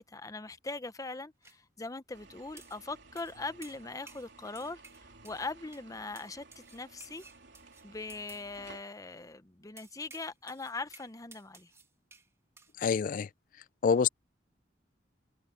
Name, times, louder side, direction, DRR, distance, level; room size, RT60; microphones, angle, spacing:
voice 1, 0.0-7.2 7.8-11.7, left 3 dB, 20° left, 0.8 m, -41 dB
sound 1, 1.4-1.6 2.6-2.8 3.2-3.4 3.6-4.3 4.5-5.5 5.7-5.9 6.1-8.5 9.8-12.3 12.6-12.7, right 3 dB, 15° right, 2.2 m, -55 dB
sound 2, 2.1-8.8, right 3 dB, 80° right, 3.5 m, -56 dB
voice 2, 12.8-13.3 13.8-14.1, left 6 dB, 50° left, 0.3 m, -26 dB
head